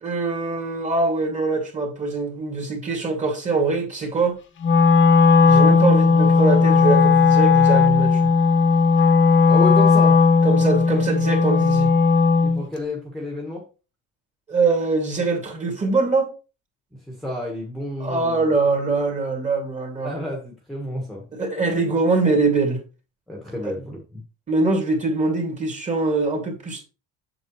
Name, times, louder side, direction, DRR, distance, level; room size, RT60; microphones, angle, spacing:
voice 1, 0.0-4.3 5.4-8.2 10.4-11.9 14.5-16.3 18.0-20.1 21.3-22.8 23.6-23.7 24.5-26.8, right 3 dB, 25° right, 2.5 m, -23 dB
Wind instrument woodwind instrument, 4.6-12.6, left 5 dB, 40° left, 1.3 m, -16 dB
voice 2, 9.5-10.2 12.4-13.6 17.1-18.4 20.0-21.2 23.3-24.2, left 1 dB, ahead, 1.5 m, -30 dB
7.7 x 7.2 x 3.2 m
cardioid pair, 155°, 31 cm